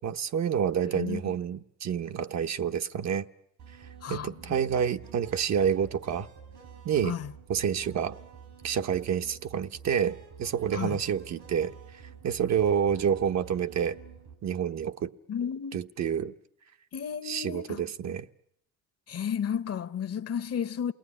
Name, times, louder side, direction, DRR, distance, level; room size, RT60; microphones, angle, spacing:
voice 1, 0.0-3.3 4.1-6.3 6.8-7.2 7.5-8.2 8.6-11.7 12.2-14.0 14.4-15.1 15.7-16.3 17.2-18.3, right 8 dB, 60° right, 1.0 m, -28 dB
sound 1, 3.6-14.4, right 7 dB, 90° right, 6.4 m, -49 dB
voice 2, 4.0-4.6 7.0-7.3 10.7-11.0 15.3-15.8 16.9-17.8 19.1-20.9, left 8 dB, 55° left, 1.0 m, -33 dB
28.0 x 20.0 x 9.9 m
cardioid pair, 90°, 30 cm